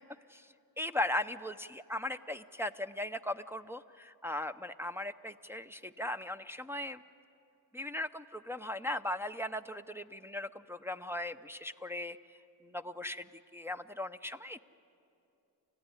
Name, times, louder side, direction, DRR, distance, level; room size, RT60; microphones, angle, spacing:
voice 1, 0.8-7.0 7.7-12.2 12.6-13.3 13.5-14.6, left 1 dB, 5° right, 7 dB, 0.7 m, -38 dB
28.5 x 14.5 x 9.8 m, 2.8 s
cardioid pair, 45°, 41 cm